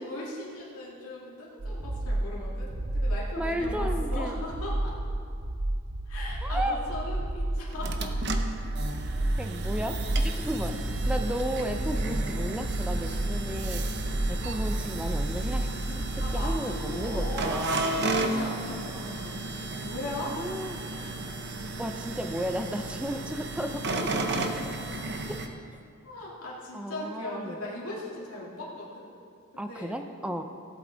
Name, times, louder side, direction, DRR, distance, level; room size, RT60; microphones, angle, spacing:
voice 1, 0.0-5.0 6.1-8.1 16.2-19.4 19.7-20.6 21.0-21.3 24.7-24.8 26.0-29.1 29.5-30.0, left 1 dB, 80° left, -5 dB, 2.3 m, -39 dB
sound 1, 1.6-17.4, right 1 dB, 80° right, 0.9 m, -31 dB
voice 2, 3.4-4.4 6.4-6.8 9.4-10.0 10.2-10.7 11.1-13.8 14.3-17.8 20.2-21.1 21.8-24.7 25.3-25.4 26.7-27.6 29.6-30.4, equal, 5° right, 6 dB, 0.5 m, -34 dB
sound 2, 7.7-25.5, right 2 dB, 50° right, 0.8 m, -34 dB
17.0 x 8.4 x 3.9 m, 2.4 s
head